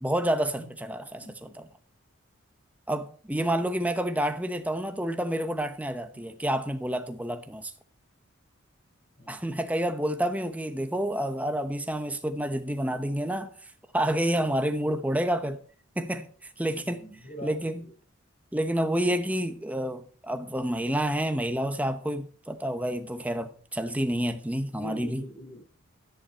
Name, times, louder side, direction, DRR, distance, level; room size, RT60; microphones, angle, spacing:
voice 1, 0.0-1.2 2.9-7.7 9.3-13.5 13.9-15.6 16.0-16.3 16.6-17.0 17.4-17.8 18.5-25.2, right 1 dB, 5° right, 0.9 m, -29 dB
voice 2, 1.0-1.6 6.1-6.3 9.2-9.4 16.8-17.9 24.7-25.6, equal, 40° left, 5.2 m, -44 dB
11.5 x 9.6 x 4.5 m
head